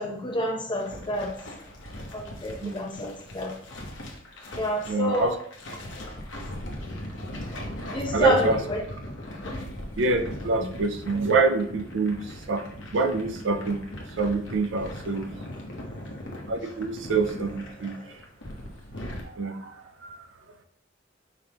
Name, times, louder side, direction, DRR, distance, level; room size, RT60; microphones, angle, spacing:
voice 1, 0.0-1.5 2.1-3.5 4.6-5.4 7.9-8.8 9.4-9.7 10.6-10.7 14.8-16.2 17.7-18.2, left 1 dB, 25° left, 1 dB, 0.8 m, -31 dB
sound 1, 0.7-19.2, left 1 dB, 70° left, 1.0 m, -39 dB
voice 2, 4.9-5.3 8.1-8.6 10.0-12.6 12.9-13.8 14.2-15.3 16.5-17.9 19.2-20.3, right 3 dB, 75° right, 6 dB, 0.5 m, -26 dB
4.9 x 3.5 x 2.9 m, 0.63 s
head